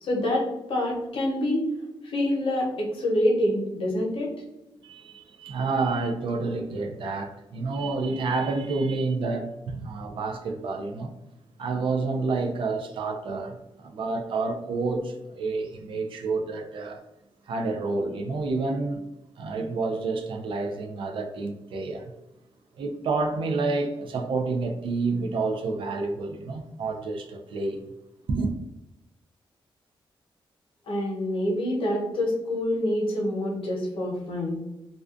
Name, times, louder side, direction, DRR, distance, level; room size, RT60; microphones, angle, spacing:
voice 1, 0.0-1.6 2.0-4.3 30.9-34.6, left 1 dB, 75° left, 0.8 m, -26 dB
voice 2, 4.8-11.1 11.6-17.0 17.5-19.0 19.4-22.1 22.8-27.8 28.3-28.5, right 3 dB, 70° right, 0.3 m, -29 dB
2.4 x 2.2 x 2.4 m
wide cardioid pair, 130°, 9 cm